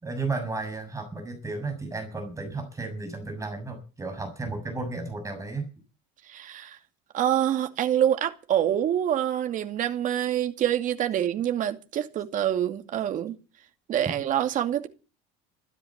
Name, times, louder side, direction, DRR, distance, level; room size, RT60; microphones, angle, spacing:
voice 1, 0.0-5.7, right 3 dB, 20° right, 6.7 m, -33 dB
voice 2, 6.3-6.8 7.1-13.4 13.9-14.9, right 10 dB, 50° right, 2.5 m, -26 dB
14.5 x 12.0 x 7.4 m
supercardioid pair, 100°, 17 cm